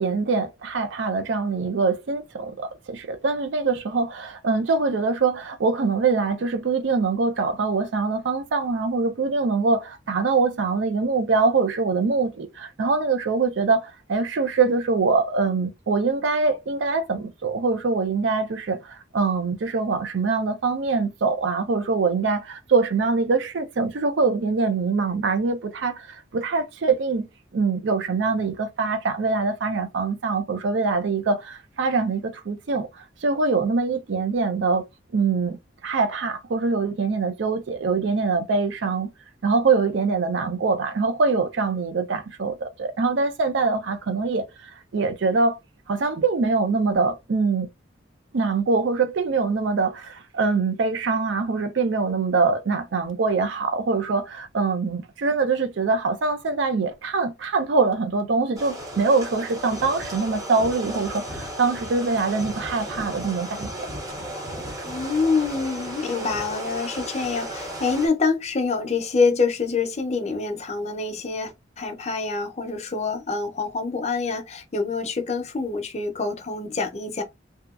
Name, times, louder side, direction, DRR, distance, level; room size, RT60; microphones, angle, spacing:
voice 1, 0.0-27.2 27.5-34.8 35.1-35.6 35.8-39.1 39.4-45.6 45.9-47.7 48.3-63.9, right 4 dB, 75° right, 0.5 m, -23 dB
sound 1, 58.6-68.1, equal, 20° right, 0.5 m, -35 dB
voice 2, 64.8-77.2, left 4 dB, 35° left, 0.5 m, -26 dB
2.8 x 2.2 x 2.3 m
head